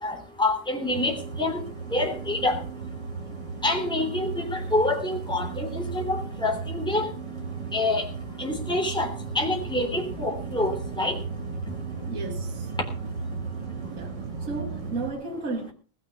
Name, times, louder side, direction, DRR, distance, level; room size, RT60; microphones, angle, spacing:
voice 1, 0.0-1.6 1.9-2.6 3.6-7.1 7.7-8.1 8.4-9.1 9.3-11.2, left 2 dB, ahead, 3.3 m, -27 dB
sound 1, 0.9-15.1, right 4 dB, 75° right, 2.2 m, -35 dB
voice 2, 12.1-12.7 14.0-14.1 14.4-15.7, right 3 dB, 45° right, 2.5 m, -33 dB
19.5 x 7.1 x 6.8 m
omnidirectional pair, 1.9 m